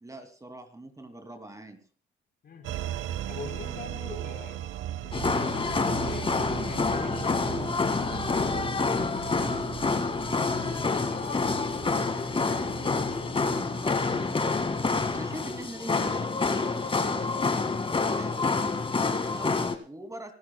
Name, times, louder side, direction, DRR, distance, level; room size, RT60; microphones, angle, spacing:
voice 1, 0.0-1.8 15.1-20.3, right 1 dB, 15° right, 8 dB, 2.4 m, -44 dB
sound 1, 2.6-15.7, right 12 dB, 80° right, 0.7 m, -39 dB
voice 2, 3.3-4.7 5.0-7.5 8.1-9.6 10.4-13.4, left 5 dB, 55° left, 5 dB, 4.0 m, -44 dB
sound 2, 5.1-19.8, left 4 dB, 25° left, 1.8 m, -28 dB
25.5 x 14.5 x 2.2 m, 0.40 s
cardioid pair, 90°, 20 cm